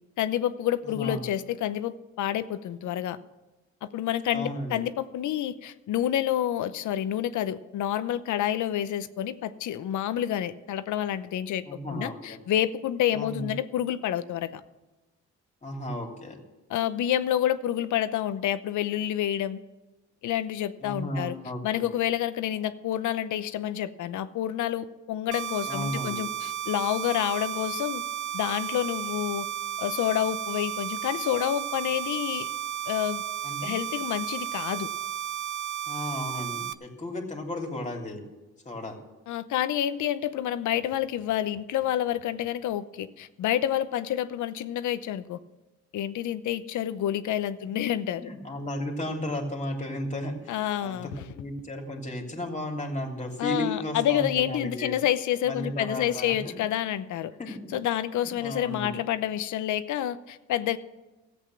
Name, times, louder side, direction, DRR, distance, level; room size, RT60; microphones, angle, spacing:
voice 1, 0.2-3.2 3.8-14.6 16.7-19.6 20.2-21.3 21.6-28.0 28.3-29.4 29.8-32.5 32.9-33.2 33.6-34.9 39.3-45.4 45.9-48.2 50.5-51.1 53.4-57.3 57.7-60.8, left 11 dB, 75° left, 13 dB, 0.8 m, -28 dB
voice 2, 0.8-1.3 4.3-4.8 11.6-12.4 13.1-13.5 15.6-16.4 20.8-21.9 25.7-26.2 33.4-33.7 35.9-38.2 38.6-38.9 48.2-55.0 55.4-56.5 57.4-57.5 58.2-58.9, left 1 dB, 25° left, 2 dB, 2.9 m, -34 dB
sound 1, 25.3-36.7, right 10 dB, 75° right, 0.7 m, -33 dB
14.0 x 8.2 x 7.5 m, 1.1 s
cardioid pair, 90°, 30 cm